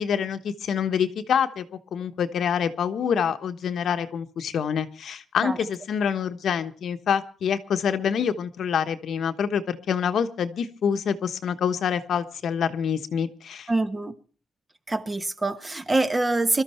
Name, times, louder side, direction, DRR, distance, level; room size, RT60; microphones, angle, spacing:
voice 1, 0.0-1.6 1.9-13.7, left 7 dB, 65° left, 1.2 m, -26 dB
voice 2, 13.7-14.1 14.9-16.6, right 2 dB, 20° right, 1.2 m, -25 dB
22.5 x 13.0 x 4.4 m
cardioid pair, 130°, 0 cm